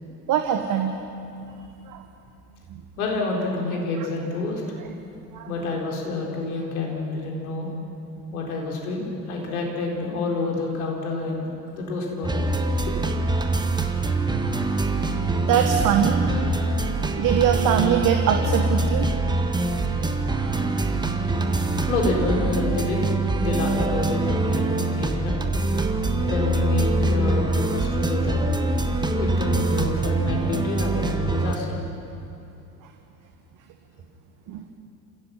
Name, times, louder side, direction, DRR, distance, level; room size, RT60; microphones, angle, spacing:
voice 1, 0.3-1.0 1.9-2.0 5.3-5.5 15.5-16.2 17.2-19.1 34.5-34.6, right 9 dB, 45° right, 5 dB, 1.5 m, -22 dB
voice 2, 3.0-4.6 5.5-7.7 8.3-12.4 12.9-13.0 21.9-25.3 26.2-28.4 29.1-31.8, left 3 dB, 70° left, -1 dB, 4.1 m, -28 dB
sound 1, 12.2-31.6, right 2 dB, 10° right, 1.5 m, -24 dB
28.5 x 16.5 x 5.9 m, 2.6 s
figure-of-eight pair, 70°, 44 cm